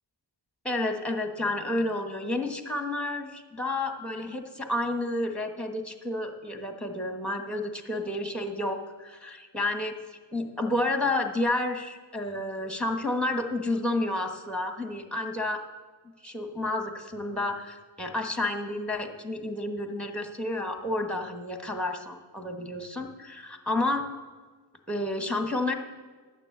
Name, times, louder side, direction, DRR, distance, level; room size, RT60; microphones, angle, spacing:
voice 1, 0.6-9.9 10.3-15.6 16.2-24.0 24.9-25.7, left 2 dB, ahead, 4 dB, 1.1 m, -30 dB
12.0 x 6.6 x 7.9 m, 1.4 s
wide cardioid pair, 145°, 44 cm